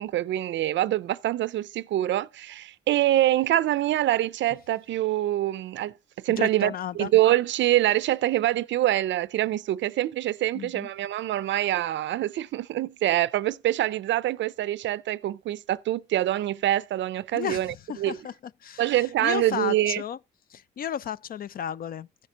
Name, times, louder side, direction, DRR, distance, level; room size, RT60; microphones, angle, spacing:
voice 1, 0.0-5.9 6.2-18.2 18.8-20.0, right 14 dB, 70° right, 0.4 m, -25 dB
voice 2, 6.3-7.1 10.5-10.9 17.3-18.3 18.6-20.2 20.5-22.1, left 9 dB, 50° left, 0.4 m, -33 dB
15.5 x 6.6 x 2.8 m
cardioid pair, 90°, 20 cm